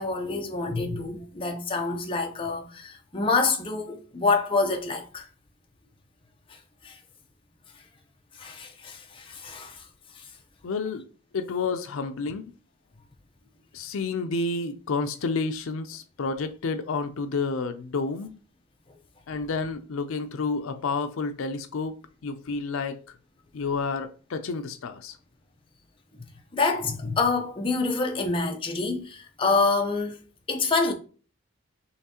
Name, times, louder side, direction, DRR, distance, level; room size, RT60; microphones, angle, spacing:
voice 1, 0.0-5.3 6.5-6.6 6.8-7.0 8.4-9.8 10.2-10.3 26.5-30.2 30.5-30.9, left 3 dB, 25° left, 0.7 m, -27 dB
voice 2, 10.6-11.0 11.3-12.5 13.7-18.3 19.3-22.0 22.2-23.0 23.5-25.2, left 4 dB, 70° left, 0.4 m, -30 dB
5.7 x 3.2 x 2.9 m
head